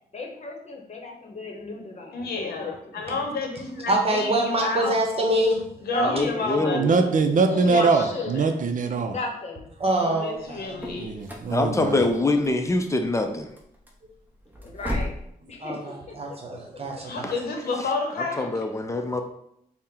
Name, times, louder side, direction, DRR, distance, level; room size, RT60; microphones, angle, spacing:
voice 1, 0.1-3.2 5.9-6.5 7.5-8.4 9.0-9.7 14.6-15.1 15.5-15.8 16.1-16.2 17.6-17.7, left 3 dB, 45° left, 1 dB, 0.9 m, -34 dB
voice 2, 2.1-4.9 5.9-6.8 7.7-8.5 10.0-11.1 17.0-18.5, left 2 dB, 90° left, 2 dB, 0.8 m, -30 dB
voice 3, 3.9-5.6 9.8-10.8 15.6-17.3, right 1 dB, 40° right, 1 dB, 1.0 m, -25 dB
voice 4, 6.0-7.0 11.5-13.5 17.2-17.3 18.2-19.2, left 2 dB, 20° left, 5 dB, 0.5 m, -25 dB
voice 5, 6.7-9.2 10.9-12.1, right 4 dB, 60° right, 6 dB, 0.5 m, -22 dB
sound 1, 10.4-15.3, left 1 dB, 10° right, 0.8 m, -36 dB
4.2 x 2.1 x 3.7 m, 0.76 s
cardioid pair, 85°, 16 cm